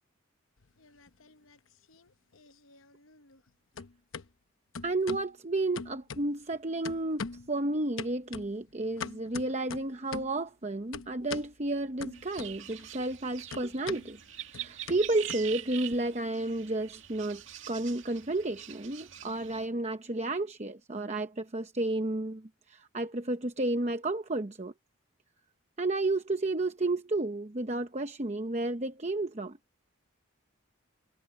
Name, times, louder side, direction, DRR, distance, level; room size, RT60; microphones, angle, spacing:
sound 1, 0.6-1.6 1.9-3.5 3.7-4.3 4.7-5.3 5.7-6.5 6.8-7.5 8.0-10.4 10.9-11.5 12.0-12.8 13.1-16.0, left 5 dB, 80° left, 0.9 m, -42 dB
voice 1, 4.8-14.2 14.5-24.7 25.8-29.6, right 2 dB, 35° right, 0.9 m, -32 dB
sound 2, 12.1-19.7, right 11 dB, 65° right, 2.2 m, -44 dB
head